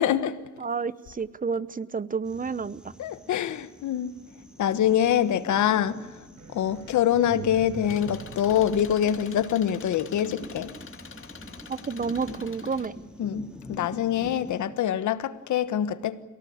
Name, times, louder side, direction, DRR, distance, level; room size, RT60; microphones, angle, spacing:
voice 1, 0.0-0.4 3.0-4.1 4.6-6.2 6.5-10.7 13.2-16.2, left 10 dB, 70° left, 1.4 m, -25 dB
voice 2, 0.6-2.8 7.3-7.5 11.7-12.9, right 5 dB, 25° right, 0.9 m, -30 dB
sound 1, 2.2-14.7, equal, 5° right, 2.3 m, -46 dB
sound 2, 6.4-9.8, right 5 dB, 75° right, 4.5 m, -43 dB
Engine, 7.9-12.9, left 6 dB, 45° left, 2.9 m, -46 dB
28.0 x 18.0 x 8.7 m
cardioid pair, 90°, 30 cm